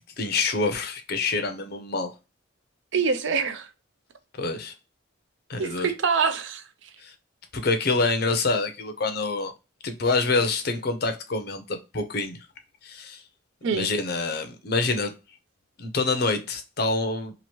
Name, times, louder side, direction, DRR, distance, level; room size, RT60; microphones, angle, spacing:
voice 1, 0.2-2.1 4.4-4.7 5.5-5.9 7.0-7.1 7.5-9.5 9.8-12.4 12.8-13.2 13.7-15.1 15.8-17.3, left 3 dB, 50° left, 0.6 m, -26 dB
voice 2, 2.9-3.7 5.6-6.6 13.6-13.9, right 5 dB, 65° right, 0.5 m, -25 dB
2.9 x 2.5 x 2.8 m
head